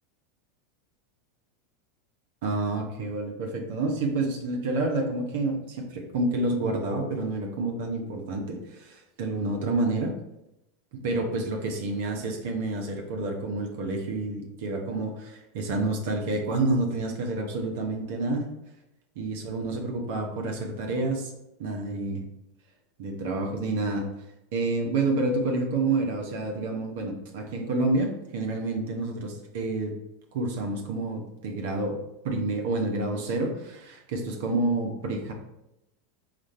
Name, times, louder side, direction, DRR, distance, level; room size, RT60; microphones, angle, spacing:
voice 1, 2.4-10.1 10.9-18.5 19.1-21.3 21.6-22.2 23.0-24.0 24.5-29.9 30.3-32.0 32.2-35.3, right 2 dB, 70° right, 2 dB, 1.0 m, -29 dB
4.9 x 2.6 x 4.2 m, 0.88 s
hypercardioid pair, 100°, 0 cm